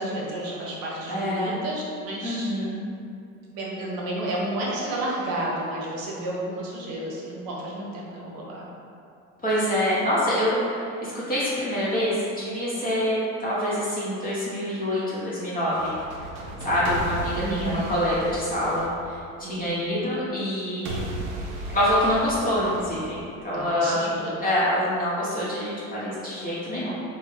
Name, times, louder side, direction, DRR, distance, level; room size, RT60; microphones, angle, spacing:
voice 1, 0.0-2.5 3.5-8.7 17.4-18.0 19.4-19.9 23.5-24.4, right 1 dB, 55° right, -4 dB, 0.9 m, -31 dB
voice 2, 1.1-1.5 2.2-2.8 9.4-15.9 16.6-21.1 21.7-24.1 24.4-26.9, equal, 20° left, -9 dB, 1.0 m, -26 dB
sound 1, 15.6-19.7 20.9-23.7, right 1 dB, 75° right, 0.6 m, -36 dB
3.1 x 2.3 x 3.2 m, 2.5 s
hypercardioid pair, 70°, 41 cm